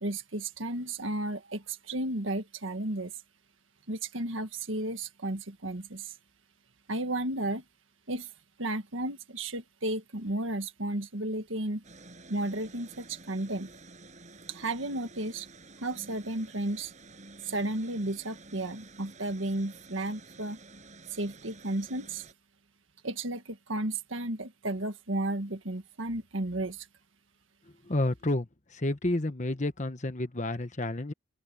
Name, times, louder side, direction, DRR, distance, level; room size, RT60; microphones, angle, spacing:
voice 1, 0.0-3.1 3.9-6.1 6.9-7.6 8.1-8.3 8.6-11.8 12.3-13.7 14.5-15.5 15.8-16.9 17.4-20.6 21.1-22.3 23.0-26.9, right 1 dB, 70° right, 1.7 m, -33 dB
sound 1, 11.8-22.3, right 3 dB, 35° right, 6.8 m, -51 dB
voice 2, 27.9-31.1, left 1 dB, 35° left, 1.2 m, -30 dB
open air
head